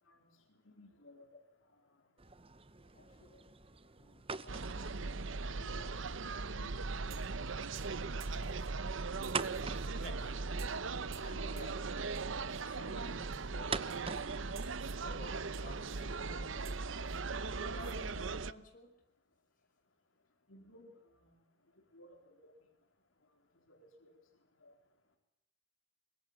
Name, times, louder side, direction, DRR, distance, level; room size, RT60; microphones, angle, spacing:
voice 1, 0.7-1.3 2.9-3.4 4.3-4.8 5.6-6.9 20.5-21.3 21.9-22.5 23.7-24.1 24.6-24.7, left 1 dB, 80° left, 3 dB, 4.1 m, -59 dB
sound 1, 2.2-16.4, right 4 dB, 30° right, 1.0 m, -47 dB
sound 2, 4.5-18.5, right 4 dB, 70° right, 0.9 m, -39 dB
sound 3, 7.1-7.4 7.7-8.8 9.2-10.1 10.6-10.8 11.1-11.8 12.1-12.6 13.3-13.5 13.9-14.2 14.5-15.0 15.5-16.1 16.6-18.0 18.3-18.4, right 11 dB, 85° right, 2.6 m, -56 dB
voice 2, 9.9-10.4 11.2-11.9 12.6-14.0 15.0-18.9, left 2 dB, 45° left, 4 dB, 5.7 m, -53 dB
25.0 x 21.5 x 8.7 m, 0.78 s
head